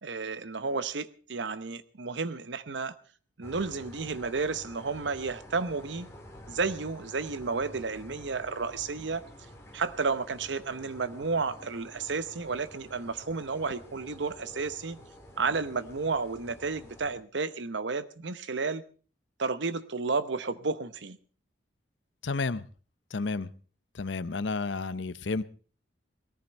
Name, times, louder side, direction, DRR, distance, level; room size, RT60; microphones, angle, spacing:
voice 1, 0.0-2.9 3.4-6.1 6.5-9.2 9.7-15.0 15.4-18.8 19.4-21.2, right 4 dB, 75° right, 13 dB, 0.8 m, -32 dB
sound 1, 3.4-17.2, left 1 dB, 15° left, 3.0 m, -50 dB
voice 2, 22.2-22.6 23.1-23.5 24.0-25.4, left 3 dB, 75° left, 15 dB, 0.7 m, -31 dB
19.0 x 14.0 x 4.2 m, 0.38 s
head